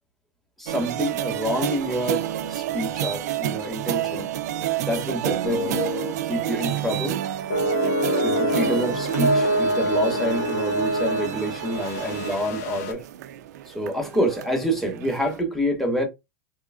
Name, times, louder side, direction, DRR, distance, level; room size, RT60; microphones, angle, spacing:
voice 1, 0.6-4.3 4.8-5.9 6.3-7.2 8.2-13.0 13.7-16.1, equal, ahead, 1.8 m, -27 dB
sound 1, 0.7-15.4, right 12 dB, 75° right, 0.5 m, -30 dB
sound 2, 5.4-6.2 6.5-6.8 7.5-12.9, equal, 60° left, 1.4 m, -25 dB
3.6 x 3.5 x 2.4 m
hypercardioid pair, 115°, 9 cm